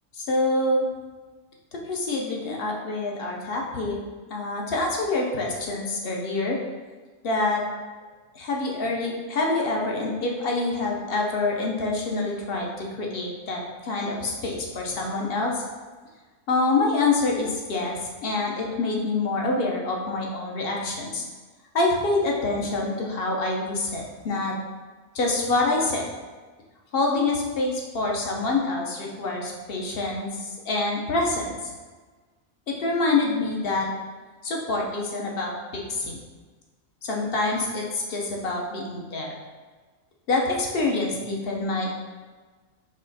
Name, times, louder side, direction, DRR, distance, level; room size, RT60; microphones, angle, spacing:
voice 1, 0.1-0.9 1.7-4.0 4.3-6.6 7.2-7.6 8.3-15.6 16.5-21.2 21.7-24.5 25.1-26.1 26.9-31.5 32.7-33.9 34.4-36.2 37.0-39.4 40.3-41.9, left 2 dB, 50° left, -1 dB, 0.9 m, -26 dB
4.3 x 3.1 x 3.9 m, 1.4 s
omnidirectional pair, 1.4 m